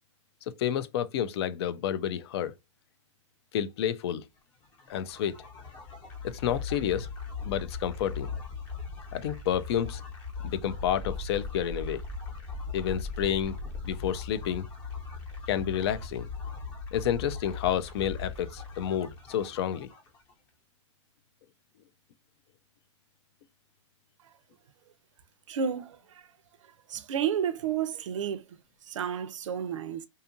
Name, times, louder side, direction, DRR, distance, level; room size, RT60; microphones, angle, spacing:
voice 1, 0.6-2.5 3.5-4.2 4.9-5.4 6.2-7.1 7.5-8.3 9.1-10.0 10.4-12.0 12.7-13.6 13.8-14.7 15.5-16.3 16.9-19.9, left 9 dB, 55° left, 0.4 m, -30 dB
sound 1, 4.6-20.3, left 4 dB, 25° left, 0.7 m, -39 dB
voice 2, 25.5-26.3 26.6-30.1, right 8 dB, 80° right, 0.5 m, -32 dB
2.7 x 2.4 x 2.5 m
hypercardioid pair, 145°, 16 cm